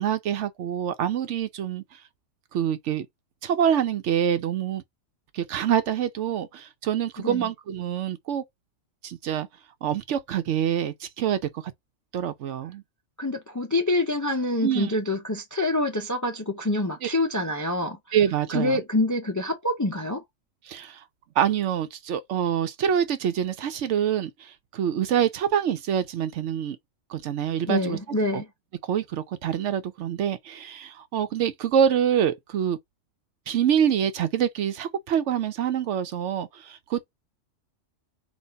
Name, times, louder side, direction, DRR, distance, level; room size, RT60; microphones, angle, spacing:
voice 1, 0.0-2.0 2.5-3.1 3.4-4.8 5.3-8.4 9.0-9.5 9.8-11.6 12.1-12.8 14.6-14.9 17.0-17.1 18.1-18.8 20.7-21.0 21.4-26.8 27.1-28.0 28.3-28.4 28.8-32.8 33.5-37.1, right 9 dB, 70° right, 0.9 m, -26 dB
voice 2, 13.2-18.2 18.5-20.2 27.7-28.5, left 2 dB, 30° left, 0.3 m, -26 dB
4.1 x 2.5 x 4.5 m
omnidirectional pair, 1.3 m